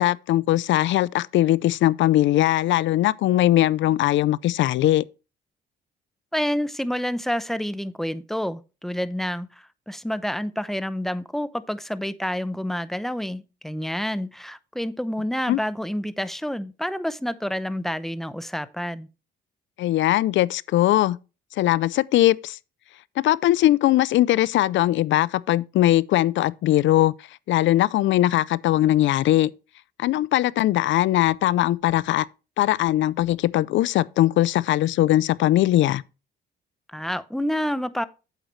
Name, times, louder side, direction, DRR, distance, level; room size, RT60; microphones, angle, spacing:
voice 1, 0.0-5.0 15.5-15.6 19.8-21.2 21.6-22.6 23.2-27.1 27.5-29.5 30.0-32.3 32.6-36.0, left 14 dB, 75° left, 0.5 m, -20 dB
voice 2, 6.3-19.1 36.9-38.0, equal, ahead, 0.6 m, -28 dB
8.3 x 8.0 x 3.2 m
cardioid pair, 90°, 20 cm